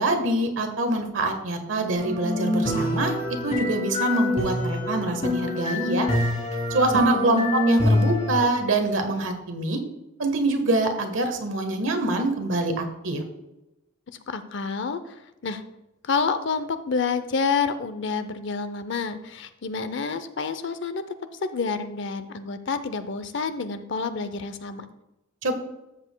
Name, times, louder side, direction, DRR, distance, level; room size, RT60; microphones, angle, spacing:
voice 1, 0.0-6.1 6.7-9.8 10.2-13.2 25.4-25.5, right 2 dB, 65° right, 5 dB, 1.3 m, -25 dB
sound 1, 1.9-8.4, left 1 dB, 35° left, 3.1 m, -25 dB
voice 2, 6.9-7.5 14.3-15.2 15.4-15.6 16.0-21.0 21.4-24.8, left 5 dB, 60° left, 11 dB, 0.6 m, -28 dB
13.5 x 7.4 x 2.3 m, 0.91 s
head